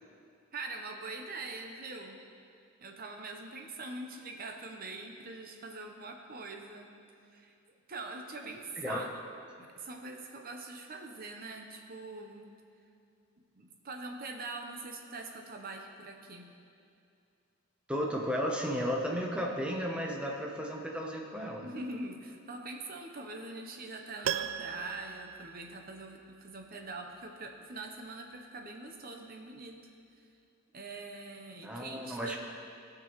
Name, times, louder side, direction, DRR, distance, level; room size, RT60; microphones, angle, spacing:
voice 1, 0.5-2.2 2.8-6.9 7.3-7.5 7.9-9.2 9.6-12.5 13.5-16.5 21.6-29.9 30.7-32.4, right 2 dB, 45° right, 3 dB, 0.8 m, -43 dB
voice 2, 8.8-9.1 17.9-21.7 31.6-32.4, equal, 5° right, -1 dB, 0.9 m, -34 dB
Piano, 24.2-26.3 26.6-26.7, right 9 dB, 85° right, 0.3 m, -38 dB
16.0 x 6.1 x 3.1 m, 2.5 s
head